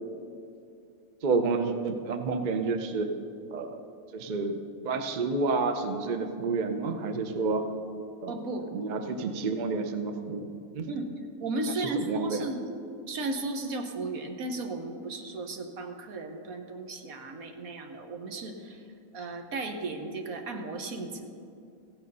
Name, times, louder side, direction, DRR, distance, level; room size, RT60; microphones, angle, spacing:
voice 1, 1.2-3.1 3.5-3.8 4.1-4.6 4.8-7.7 8.2-8.4 8.7-10.5 10.7-10.9 11.9-12.4, right 4 dB, 45° right, 7 dB, 0.7 m, -29 dB
voice 2, 8.3-8.6 10.9-11.1 11.4-12.7 13.1-18.8 19.1-21.3, right 2 dB, 75° right, 5 dB, 1.5 m, -35 dB
15.0 x 9.1 x 5.4 m, 2.5 s
omnidirectional pair, 1.5 m